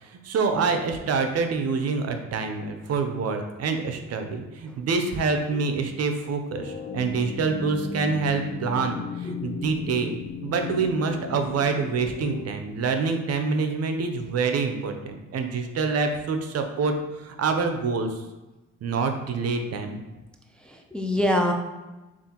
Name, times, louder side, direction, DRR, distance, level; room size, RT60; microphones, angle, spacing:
voice 1, 0.0-10.1 10.4-18.2 18.8-20.0, right 4 dB, 55° right, 6 dB, 0.6 m, -26 dB
sound 1, 6.5-12.4, left 5 dB, 45° left, 0.7 m, -35 dB
voice 2, 20.6-21.5, left 1 dB, 5° left, 2 dB, 0.4 m, -25 dB
7.0 x 2.5 x 2.9 m, 1.1 s
cardioid pair, 90°, 30 cm